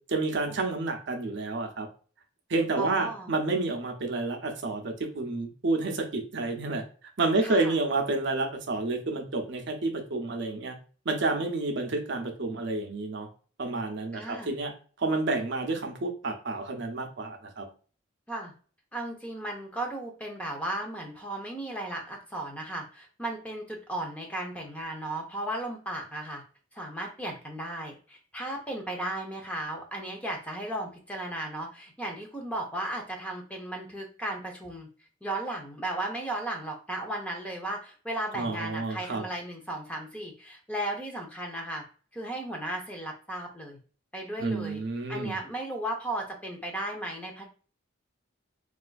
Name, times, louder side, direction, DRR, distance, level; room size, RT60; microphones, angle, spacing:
voice 1, 0.1-1.9 2.5-6.8 7.2-10.8 11.1-13.3 13.6-14.7 15.0-17.7 38.3-39.2 44.4-45.4, right 3 dB, 60° right, 3 dB, 0.6 m, -29 dB
voice 2, 2.8-3.3 7.4-7.8 14.1-14.5 18.3-18.5 18.9-26.4 26.7-34.9 35.2-41.8 42.1-43.8 44.1-44.8 45.1-47.5, right 1 dB, 5° left, 1 dB, 0.6 m, -35 dB
4.1 x 2.4 x 2.3 m, 0.39 s
head